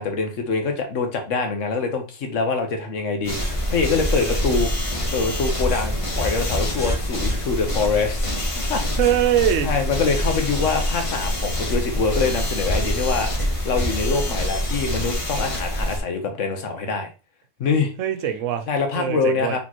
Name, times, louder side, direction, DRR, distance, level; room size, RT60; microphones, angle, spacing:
voice 1, 0.0-4.7 5.1-8.3 8.5-8.8 9.6-17.1 17.6-17.9 18.7-19.6, left 4 dB, 80° left, 1.3 m, -24 dB
sound 1, 3.2-16.0, left 1 dB, 30° left, 1.0 m, -25 dB
voice 2, 9.0-9.7 18.0-18.7 18.9-19.6, right 10 dB, 85° right, 1.0 m, -22 dB
4.2 x 3.7 x 2.9 m
omnidirectional pair, 1.3 m